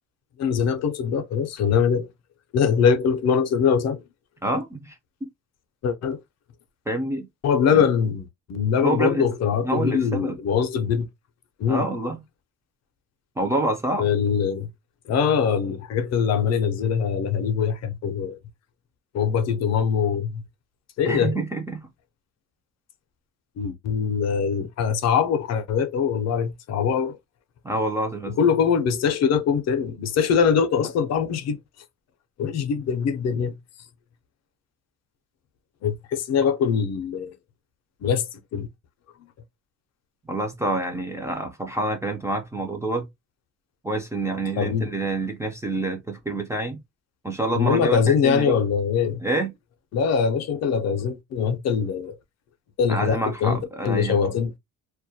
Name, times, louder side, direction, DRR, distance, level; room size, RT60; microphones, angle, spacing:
voice 1, 0.4-2.1 2.5-4.0 5.8-6.2 7.4-11.1 11.6-11.9 14.0-14.7 15.1-18.4 19.1-20.4 21.0-21.4 23.6-27.2 28.4-31.6 32.4-33.6 35.8-37.3 38.0-38.7 44.6-44.9 47.5-49.2 49.9-52.1 52.8-54.5, left 6 dB, 60° left, 0.5 m, -23 dB
voice 2, 4.4-5.3 6.9-7.3 7.7-7.9 8.8-9.3 9.6-10.4 11.7-12.2 13.4-14.1 21.1-21.9 27.6-28.4 40.3-43.1 43.8-46.8 47.2-48.6 49.2-49.5 52.9-54.3, right 2 dB, 10° right, 0.3 m, -27 dB
2.2 x 2.1 x 2.6 m
cardioid pair, 145°, 30 cm